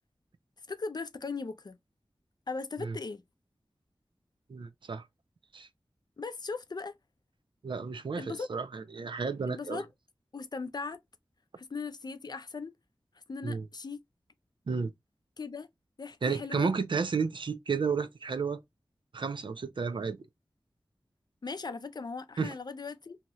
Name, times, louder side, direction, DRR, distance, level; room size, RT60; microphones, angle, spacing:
voice 1, 0.7-1.8 2.5-3.2 6.2-6.9 8.2-8.5 9.5-9.9 10.3-11.0 11.6-12.7 13.3-14.0 15.4-15.7 16.0-16.7 21.4-23.2, left 4 dB, 55° left, 0.4 m, -38 dB
voice 2, 4.5-5.0 5.5-5.7 7.6-9.8 13.4-13.7 14.7-14.9 16.2-18.6 19.1-20.2 22.4-22.5, right 5 dB, 70° right, 0.5 m, -32 dB
3.0 x 2.8 x 2.3 m
wide cardioid pair, 60°, 9 cm